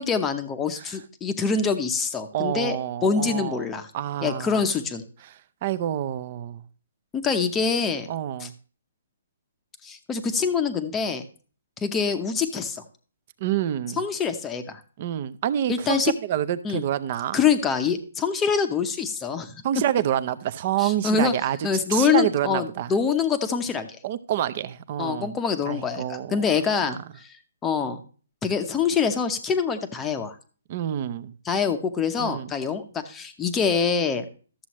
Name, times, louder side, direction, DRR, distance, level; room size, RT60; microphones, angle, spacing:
voice 1, 0.0-2.8 3.0-3.9 4.2-5.0 7.1-8.1 8.4-8.5 9.8-11.3 11.8-12.8 14.0-14.8 15.7-16.1 16.6-16.8 17.3-19.6 20.8-21.3 21.6-24.0 25.0-26.0 26.3-27.3 27.6-28.0 28.4-30.3 31.5-34.3, left 6 dB, 10° left, 0.7 m, -25 dB
voice 2, 2.3-3.7 3.9-4.7 5.2-6.7 8.1-8.5 13.4-14.0 15.0-17.4 19.6-22.9 24.0-25.4 25.6-26.4 26.8-27.0 30.7-31.3 32.2-32.5, right 11 dB, 30° right, 0.5 m, -28 dB
12.5 x 7.4 x 3.0 m
hypercardioid pair, 170°, 0 cm